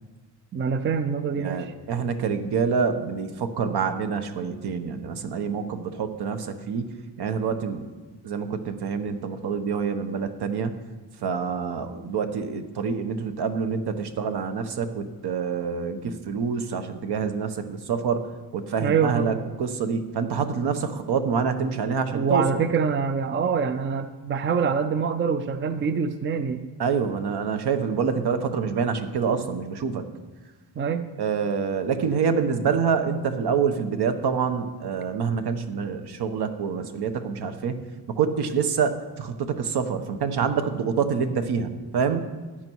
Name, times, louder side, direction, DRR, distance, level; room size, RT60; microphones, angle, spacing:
voice 1, 0.5-1.7 18.8-19.4 22.1-26.6 30.8-31.1, right 6 dB, 30° right, 10 dB, 0.5 m, -25 dB
voice 2, 1.4-7.9 8.2-10.7 11.2-22.5 26.8-30.0 31.2-37.8 38.1-42.2, right 6 dB, 65° right, 8 dB, 1.2 m, -26 dB
14.5 x 10.0 x 4.7 m, 1.3 s
cardioid pair, 140°, 43 cm